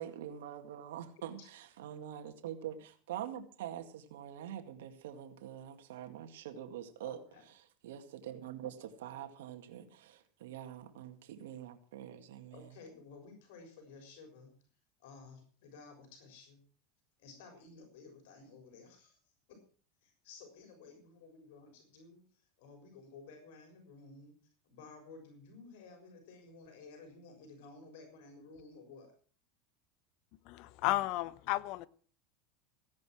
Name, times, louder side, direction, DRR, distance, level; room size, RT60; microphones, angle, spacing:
voice 1, 0.0-1.4 1.8-7.2 7.8-12.6, right 10 dB, 90° right, 2.1 m, -44 dB
voice 2, 7.0-7.5 12.5-14.5 15.0-16.6 17.2-19.2 19.5-19.6 20.0-22.2 22.6-24.3 24.6-29.1, left 4 dB, 75° left, 6.6 m, -54 dB
voice 3, 30.5-31.9, left 17 dB, 55° left, 0.9 m, -33 dB
16.5 x 11.0 x 6.2 m
supercardioid pair, 135°, 0 cm